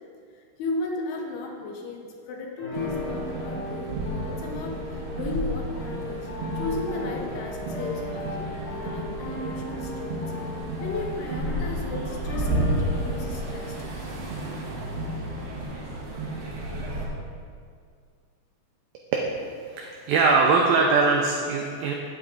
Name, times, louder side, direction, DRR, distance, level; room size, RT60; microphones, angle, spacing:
voice 1, 0.6-6.3 6.6-8.5 8.8-10.3 10.8-14.2, left 3 dB, 75° left, 0 dB, 2.7 m, -35 dB
sound 1, 2.6-13.8, left 1 dB, 40° left, 2.2 m, -37 dB
sound 2, 2.7-17.1, right 1 dB, 70° right, 1.4 m, -32 dB
voice 2, 19.7-21.9, right 4 dB, 90° right, 0 dB, 2.0 m, -21 dB
8.9 x 8.2 x 3.9 m, 2.1 s
omnidirectional pair, 5.0 m